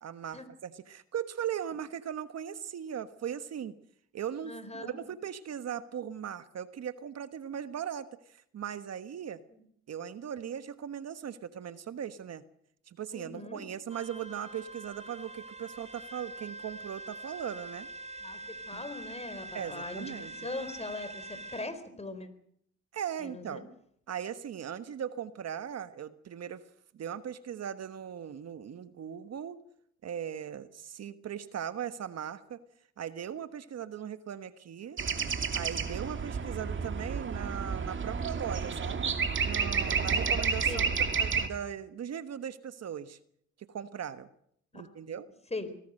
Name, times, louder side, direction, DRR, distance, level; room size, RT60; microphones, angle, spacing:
voice 1, 0.0-3.8 4.1-9.4 9.9-12.4 12.9-17.9 18.7-18.8 19.5-20.3 22.9-23.6 24.1-26.6 26.9-29.6 30.0-32.6 33.0-35.0 35.5-39.1 39.4-40.9 41.2-43.2 43.7-44.3 44.7-45.3, right 9 dB, 55° right, 11 dB, 1.4 m, -39 dB
voice 2, 4.4-5.0 9.5-9.6 13.1-13.6 18.2-22.3 23.2-23.6 40.7-41.0 44.7-44.8 45.5-45.7, left 2 dB, 20° left, 11 dB, 4.5 m, -40 dB
sound 1, 13.9-21.7, right 2 dB, 20° right, 3.1 m, -44 dB
sound 2, 35.0-41.5, right 5 dB, 40° right, 2.5 m, -30 dB
25.0 x 19.0 x 6.6 m, 0.68 s
cardioid pair, 90°, 30 cm